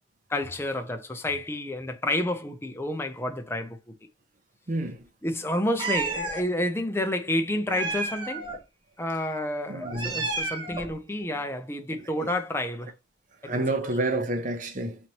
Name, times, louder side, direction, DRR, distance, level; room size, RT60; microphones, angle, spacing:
voice 1, 0.3-3.8 5.2-8.5 9.0-12.9 13.4-13.9, left 1 dB, 15° left, 0.5 m, -30 dB
voice 2, 4.7-5.0 9.7-10.3 12.2-12.3 13.4-15.0, right 2 dB, 45° right, 0.7 m, -29 dB
Meow, 5.8-6.4 7.7-8.6 9.8-10.9, right 3 dB, 25° right, 1.0 m, -31 dB
4.0 x 3.1 x 2.8 m
head